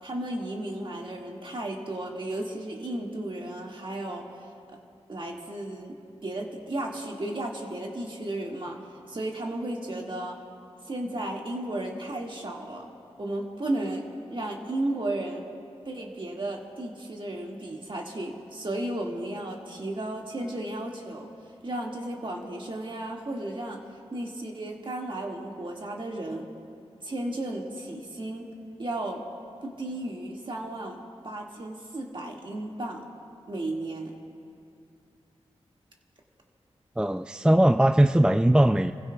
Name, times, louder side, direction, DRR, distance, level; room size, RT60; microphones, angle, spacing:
voice 1, 0.0-4.2 4.7-4.8 5.1-6.0 6.2-10.4 10.9-12.9 13.2-14.0 14.3-15.4 15.8-21.3 21.6-23.8 24.1-26.5 27.0-28.5 28.8-29.2 29.6-31.0 31.2-33.0 33.5-34.1, right 1 dB, 50° right, -1 dB, 2.0 m, -34 dB
voice 2, 37.0-38.9, right 1 dB, 10° right, 8 dB, 0.3 m, -20 dB
30.0 x 15.5 x 2.3 m, 2.4 s
cardioid pair, 60°, 11 cm